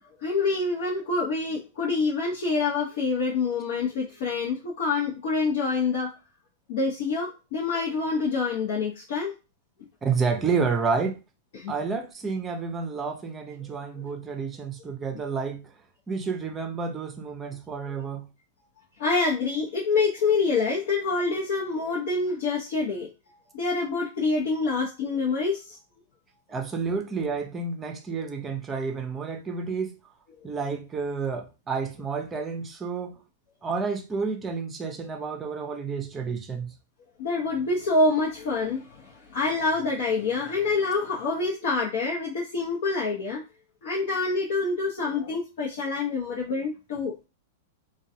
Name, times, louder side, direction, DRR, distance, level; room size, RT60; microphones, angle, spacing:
voice 1, 0.2-6.1 6.7-9.3 11.5-11.7 14.0-14.1 19.0-23.1 23.5-25.8 37.2-43.4 43.8-47.3, left 3 dB, 65° left, 0.8 m, -26 dB
voice 2, 10.0-11.2 11.7-15.7 16.1-18.3 26.5-30.0 30.4-33.2 33.6-36.7, right 5 dB, 20° right, 0.5 m, -30 dB
2.3 x 2.2 x 2.7 m
hypercardioid pair, 120°, 0 cm